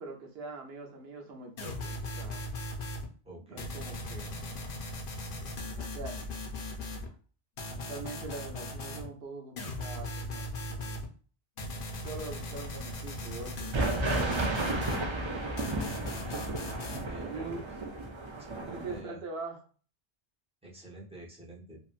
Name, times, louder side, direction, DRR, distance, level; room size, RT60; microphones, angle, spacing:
voice 1, 0.0-2.4 3.5-4.3 5.7-6.2 7.7-11.0 12.0-14.1 17.1-17.6 18.7-19.6, right 3 dB, 70° right, 2 dB, 1.0 m, -43 dB
sound 1, 1.6-3.0 3.6-7.1 7.6-9.1 9.6-11.0 11.6-15.1 15.6-17.1, left 1 dB, 60° left, 0.8 m, -38 dB
voice 2, 3.2-3.7 14.7-15.3 17.0-17.7 18.4-19.2 20.6-21.8, right 1 dB, 5° right, -5 dB, 0.7 m, -47 dB
sound 2, 13.7-19.0, right 2 dB, 50° right, 0.3 m, -33 dB
2.9 x 2.6 x 2.4 m, 0.39 s
omnidirectional pair, 1.1 m